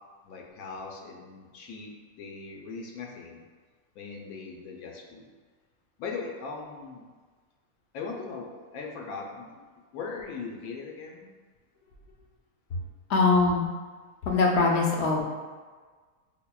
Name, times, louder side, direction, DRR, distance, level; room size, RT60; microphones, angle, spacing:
voice 1, 0.2-3.4 3.9-5.3 6.0-7.1 7.9-9.6 9.9-11.3, left 4 dB, 85° left, 0 dB, 1.1 m, -39 dB
voice 2, 13.1-13.7 14.2-15.2, left 3 dB, 65° left, -1 dB, 0.7 m, -22 dB
5.5 x 2.1 x 2.3 m, 1.5 s
omnidirectional pair, 1.5 m